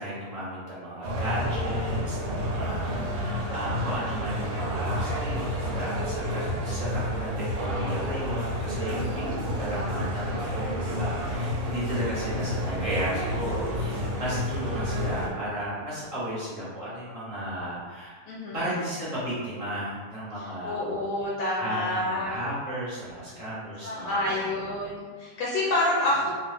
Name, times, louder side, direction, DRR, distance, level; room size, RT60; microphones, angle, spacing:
voice 1, 0.0-18.1 18.5-21.0 21.6-24.6, right 1 dB, 30° right, -9 dB, 0.7 m, -34 dB
sound 1, 1.0-15.3, equal, 80° right, 1.1 m, -30 dB
voice 2, 2.6-3.5 8.9-9.7 18.3-18.7 20.4-22.4 23.8-26.3, left 1 dB, 80° left, -5 dB, 1.1 m, -29 dB
2.5 x 2.3 x 3.3 m, 1.5 s
omnidirectional pair, 1.6 m